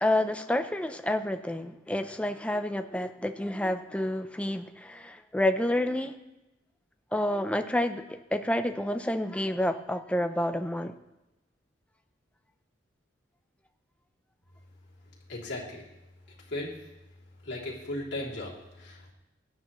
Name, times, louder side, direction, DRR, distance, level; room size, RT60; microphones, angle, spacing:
voice 1, 0.0-6.1 7.1-10.9, left 1 dB, 5° left, 8 dB, 0.5 m, -29 dB
voice 2, 15.3-15.9 16.5-16.7 17.4-19.1, left 1 dB, 65° left, -5 dB, 3.0 m, -36 dB
17.0 x 9.8 x 3.1 m, 0.97 s
head